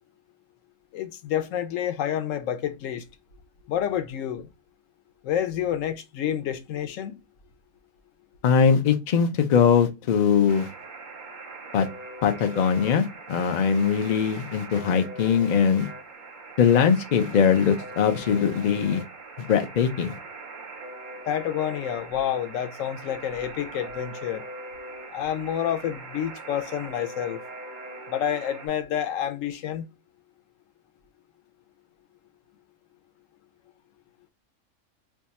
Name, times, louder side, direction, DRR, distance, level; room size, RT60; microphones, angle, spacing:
voice 1, 0.9-3.0 3.7-4.5 5.2-7.2 21.2-24.4 25.1-27.4 28.1-29.9, left 10 dB, 70° left, 0.9 m, -29 dB
voice 2, 8.4-10.7 11.7-11.9 12.2-15.9 16.6-19.0 19.4-20.2, left 7 dB, 90° left, 0.4 m, -21 dB
Alarm, 10.5-28.7, right 2 dB, 50° right, 0.6 m, -41 dB
2.7 x 2.3 x 4.0 m
omnidirectional pair, 1.5 m